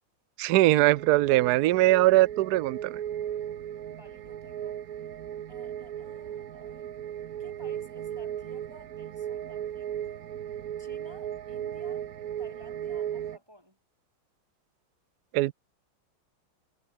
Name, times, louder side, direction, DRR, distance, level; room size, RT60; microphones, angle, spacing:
voice 1, 0.4-3.0 15.3-15.5, right 17 dB, 70° right, 0.9 m, -21 dB
sound 1, 0.9-13.4, right 10 dB, 55° right, 1.1 m, -36 dB
voice 2, 3.9-4.8 5.5-6.9 7.4-10.3 10.8-12.1 12.4-13.8, left 1 dB, 10° right, 6.2 m, -54 dB
omnidirectional pair, 2.3 m